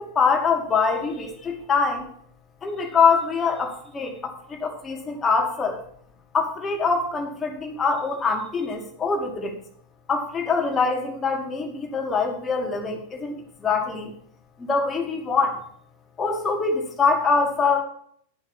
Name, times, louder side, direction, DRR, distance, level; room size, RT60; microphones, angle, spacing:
voice 1, 0.0-2.1 2.6-5.8 6.3-9.6 10.1-14.1 14.6-15.6 16.2-17.8, left 4 dB, 20° left, 2 dB, 2.2 m, -24 dB
11.0 x 5.5 x 6.2 m, 0.62 s
figure-of-eight pair, 90°, 0 cm